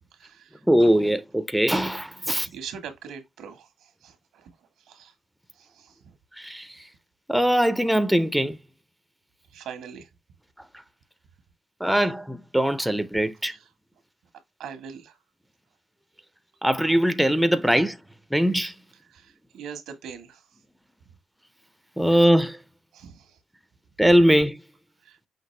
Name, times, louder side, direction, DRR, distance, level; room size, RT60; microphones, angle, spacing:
voice 1, 0.1-0.6 2.2-4.5 4.8-5.1 5.5-6.1 9.5-10.1 11.9-12.0 13.4-13.7 14.6-15.2 19.1-20.5 22.9-23.4 25.0-25.2, right 7 dB, 90° right, 1.3 m, -42 dB
voice 2, 0.7-2.5 6.4-6.7 7.3-8.6 11.8-13.5 16.6-18.0 18.3-18.7 22.0-22.6 24.0-24.6, equal, ahead, 0.4 m, -21 dB
5.8 x 2.8 x 3.1 m
cardioid pair, 175°, 0 cm